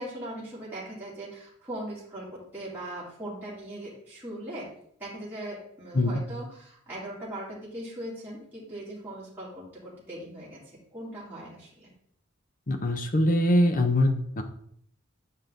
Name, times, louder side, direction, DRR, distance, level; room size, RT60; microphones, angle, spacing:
voice 1, 0.0-4.7 5.0-11.9, right 1 dB, 10° right, -8 dB, 2.5 m, -39 dB
voice 2, 12.7-14.4, left 1 dB, 40° left, 7 dB, 0.8 m, -23 dB
8.3 x 5.3 x 3.8 m, 0.65 s
head